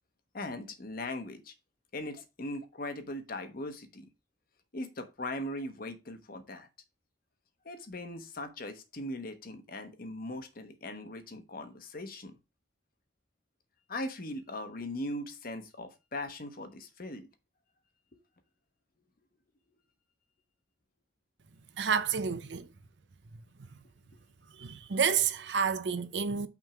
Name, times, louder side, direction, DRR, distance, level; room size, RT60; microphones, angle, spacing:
voice 1, 0.3-1.5 1.9-4.0 4.7-6.7 7.6-12.3 13.9-17.3, left 1 dB, 50° left, 1.1 m, -39 dB
voice 2, 21.8-22.7 23.7-23.8 24.6-26.5, right 6 dB, 70° right, 0.7 m, -29 dB
5.9 x 3.7 x 5.9 m
head